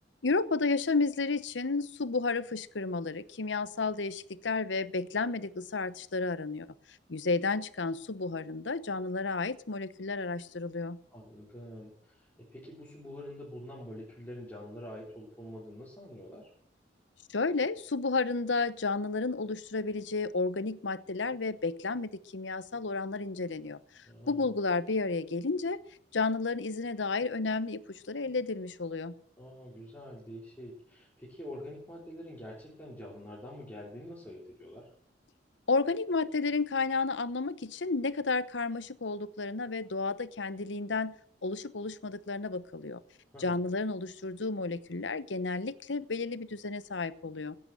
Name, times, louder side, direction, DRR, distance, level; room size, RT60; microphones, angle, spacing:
voice 1, 0.2-6.7 7.1-11.0 17.3-25.8 26.1-27.8 28.1-29.1 35.7-41.2 41.4-43.0 43.4-47.6, left 3 dB, 90° left, 15 dB, 0.9 m, -32 dB
voice 2, 11.1-16.5 24.1-24.5 29.4-34.9 43.3-43.7, left 1 dB, 10° left, -6 dB, 3.5 m, -46 dB
16.5 x 8.8 x 7.6 m, 0.64 s
head